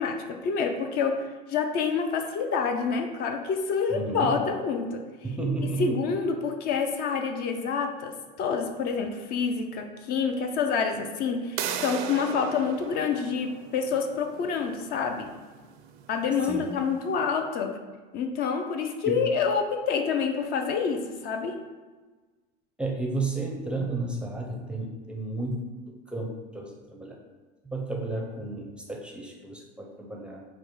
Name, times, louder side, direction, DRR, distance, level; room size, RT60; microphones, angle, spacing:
voice 1, 0.0-5.0 5.8-8.1 8.4-15.3 16.1-17.8 18.1-21.5, left 5 dB, 55° left, 5 dB, 0.5 m, -27 dB
voice 2, 3.9-4.4 5.2-6.1 16.4-16.7 19.1-19.3 22.8-27.2 27.7-30.4, right 2 dB, 5° right, 0 dB, 0.5 m, -32 dB
sound 1, 11.6-17.2, right 9 dB, 75° right, 0.5 m, -38 dB
5.0 x 2.1 x 4.5 m, 1.3 s
supercardioid pair, 130°, 19 cm